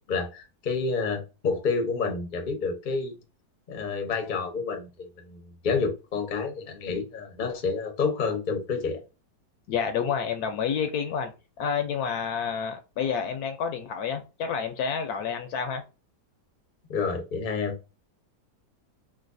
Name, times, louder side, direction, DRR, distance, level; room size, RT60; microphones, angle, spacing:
voice 1, 0.1-3.1 3.7-9.0 16.9-17.8, left 4 dB, 45° left, 0.7 m, -29 dB
voice 2, 9.7-11.3 11.6-15.8, left 6 dB, 70° left, 1.0 m, -29 dB
3.9 x 2.4 x 2.5 m
omnidirectional pair, 1.8 m